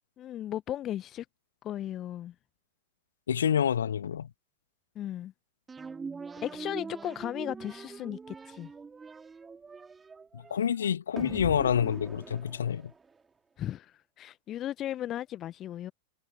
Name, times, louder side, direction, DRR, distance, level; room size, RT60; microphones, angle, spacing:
voice 1, 0.2-1.3 1.6-2.3 4.9-5.3 6.4-8.7 13.6-15.9, left 12 dB, 30° left, 0.8 m, -36 dB
voice 2, 3.3-4.3 10.3-12.9, left 8 dB, 65° left, 1.8 m, -28 dB
sound 1, 5.7-13.2, right 5 dB, 15° right, 4.2 m, -43 dB
figure-of-eight pair, 90°, 0 cm